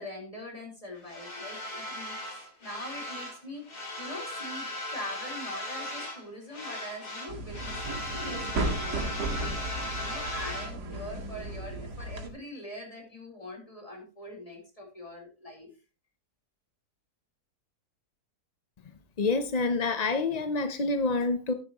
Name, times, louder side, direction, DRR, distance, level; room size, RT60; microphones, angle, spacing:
voice 1, 0.0-3.6 4.0-15.7, left 1 dB, 20° left, 4.1 m, -43 dB
sound 1, 1.1-3.4 3.7-6.2 6.5-10.7, left 1 dB, 70° left, 3.2 m, -37 dB
sound 2, 7.3-12.3, right 2 dB, 85° right, 2.3 m, -35 dB
voice 2, 19.2-21.5, left 3 dB, 40° left, 0.6 m, -27 dB
14.0 x 10.0 x 3.0 m
omnidirectional pair, 1.7 m